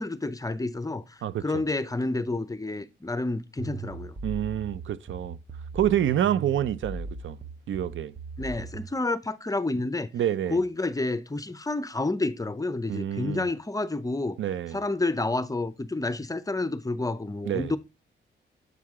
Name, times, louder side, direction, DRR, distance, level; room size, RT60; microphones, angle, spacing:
voice 1, 0.0-4.2 8.4-10.1 10.5-14.4 14.7-17.8, left 2 dB, 15° left, 0.6 m, -29 dB
voice 2, 1.2-1.6 4.2-5.4 5.7-7.4 7.7-8.2 10.1-10.6 12.9-13.5 14.4-14.8 17.4-17.7, right 10 dB, 75° right, 0.5 m, -27 dB
sound 1, 3.6-8.9, right 3 dB, 40° right, 0.8 m, -39 dB
8.0 x 4.7 x 3.6 m
cardioid pair, 100°, 20 cm